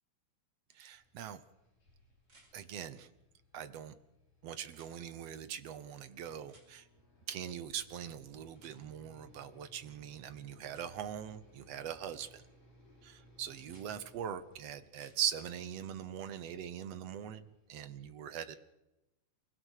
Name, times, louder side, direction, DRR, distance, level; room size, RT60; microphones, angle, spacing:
sound 1, 0.7-0.8 2.2-2.5 4.7-4.9 6.5-6.7 8.5-8.8 10.7-10.9 12.1-12.3 13.6-13.9 14.8-15.2 17.2-17.3, right 2 dB, 35° right, 6.0 m, -63 dB
voice 1, 0.7-1.4 2.5-3.1 3.5-3.9 4.4-6.8 7.3-12.4 13.0-17.4 17.7-18.6, right 9 dB, 70° right, 12 dB, 1.6 m, -41 dB
sound 2, 0.9-18.0, equal, 50° left, 8.4 m, -64 dB
29.0 x 16.5 x 6.5 m, 0.96 s
omnidirectional pair, 3.9 m